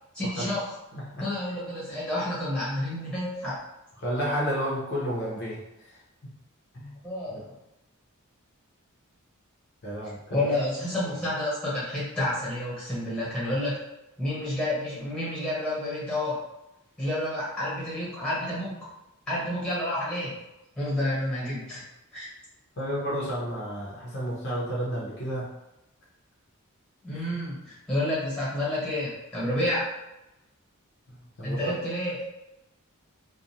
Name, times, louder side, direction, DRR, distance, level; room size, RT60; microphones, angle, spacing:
voice 1, 0.1-0.6 1.2-3.6 7.0-7.4 10.3-13.8 14.2-16.4 17.0-18.8 19.3-20.3 20.7-21.8 22.1-22.3 27.0-29.8 31.4-32.2, left 1 dB, 5° left, -8 dB, 1.1 m, -29 dB
voice 2, 0.9-1.3 4.0-6.0 6.7-7.0 7.3-7.4 9.8-10.6 11.0-11.1 21.3-21.5 22.8-25.5 31.1-31.7, equal, 50° left, -6 dB, 0.6 m, -32 dB
2.5 x 2.2 x 2.8 m, 0.94 s
head